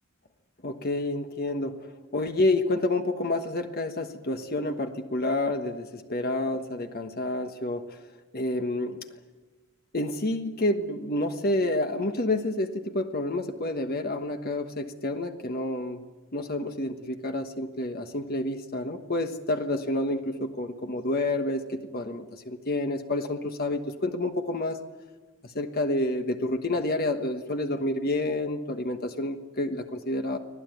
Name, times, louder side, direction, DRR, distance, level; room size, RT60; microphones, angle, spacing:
voice 1, 0.6-1.8 2.1-8.0 8.3-9.0 9.9-16.0 16.3-24.8 25.4-30.4, left 2 dB, 45° left, 6 dB, 1.3 m, -29 dB
25.0 x 17.0 x 9.3 m, 1.3 s
head